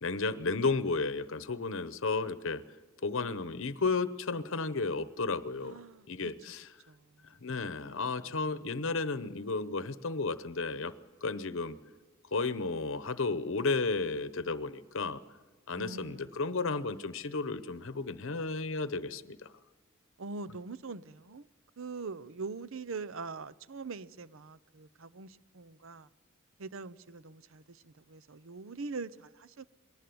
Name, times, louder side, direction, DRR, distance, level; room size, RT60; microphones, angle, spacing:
voice 1, 0.0-2.6 3.0-5.8 6.1-6.7 7.4-10.9 11.2-11.8 12.3-15.2 15.7-19.5, left 3 dB, 65° left, 0.9 m, -33 dB
voice 2, 5.6-6.1 6.9-7.3 8.2-8.5 15.8-16.3 20.2-21.5 21.8-26.1 26.6-29.7, right 4 dB, 65° right, 0.7 m, -43 dB
21.5 x 18.5 x 7.9 m
head